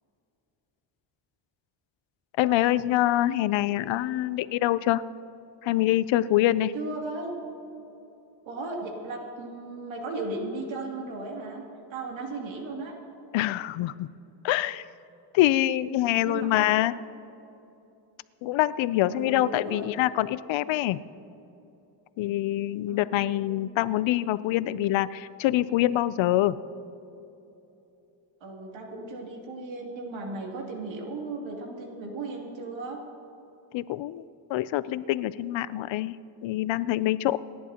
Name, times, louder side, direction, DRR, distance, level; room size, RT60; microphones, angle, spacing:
voice 1, 2.4-5.0 5.6-6.7 13.3-14.1 14.4-14.8 15.3-17.0 18.4-21.0 22.2-26.6 33.7-34.2 34.5-36.1 36.4-37.4, left 14 dB, 80° left, 16 dB, 0.6 m, -25 dB
voice 2, 6.7-7.3 8.4-11.6 11.9-12.9 16.2-16.7 19.0-19.9 22.9-23.6 28.4-33.0, right 3 dB, 85° right, 0 dB, 2.8 m, -36 dB
28.0 x 11.0 x 2.9 m, 2.9 s
cardioid pair, 165°, 45 cm